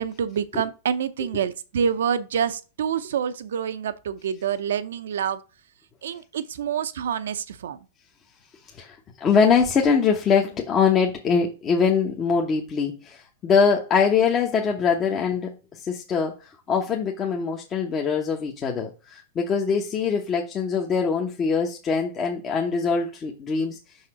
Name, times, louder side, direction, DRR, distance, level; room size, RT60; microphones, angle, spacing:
voice 1, 0.0-5.4 6.0-7.8, right 8 dB, 75° right, 0.7 m, -27 dB
voice 2, 8.7-23.8, left 6 dB, 30° left, 1.0 m, -23 dB
5.7 x 4.2 x 4.9 m
hypercardioid pair, 110°, 0 cm